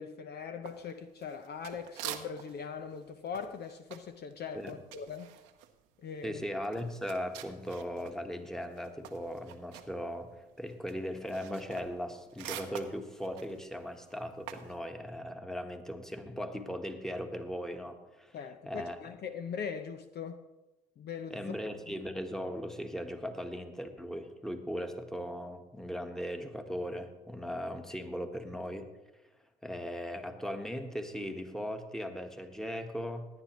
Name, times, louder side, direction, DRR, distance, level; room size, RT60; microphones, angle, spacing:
voice 1, 0.0-5.3 6.0-6.4 18.3-20.5 21.0-21.9, left 6 dB, 50° left, 0.7 m, -41 dB
sound 1, 0.6-2.7 2.9-8.2 8.5-14.8, right 12 dB, 80° right, 0.9 m, -47 dB
voice 2, 6.2-10.3 10.6-18.4 18.6-19.0 21.3-28.9 29.6-33.3, equal, ahead, 1.4 m, -38 dB
17.5 x 9.6 x 3.1 m
hypercardioid pair, 65°, 21 cm